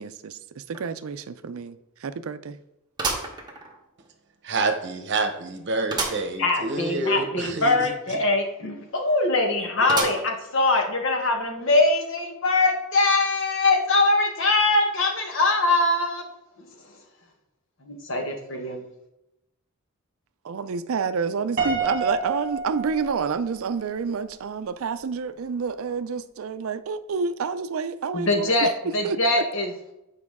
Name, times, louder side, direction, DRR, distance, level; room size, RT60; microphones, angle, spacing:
voice 1, 0.0-2.6 20.4-29.4, right 5 dB, 70° right, 0.4 m, -29 dB
sound 1, 0.7-0.8 1.3-1.4 3.0-4.1 4.6-4.7 5.9-6.3 6.7-6.8 7.0-7.1 9.9-10.5 11.1-11.2 12.2-12.3, right 3 dB, 20° right, 1.1 m, -30 dB
voice 2, 4.4-7.9, right 3 dB, 55° right, 0.9 m, -27 dB
voice 3, 6.4-16.2 17.8-18.8 28.1-28.7 28.9-29.9, left 2 dB, 60° left, 1.3 m, -22 dB
Piano, 21.6-23.8, right 3 dB, 35° right, 1.5 m, -29 dB
8.4 x 4.8 x 3.6 m
head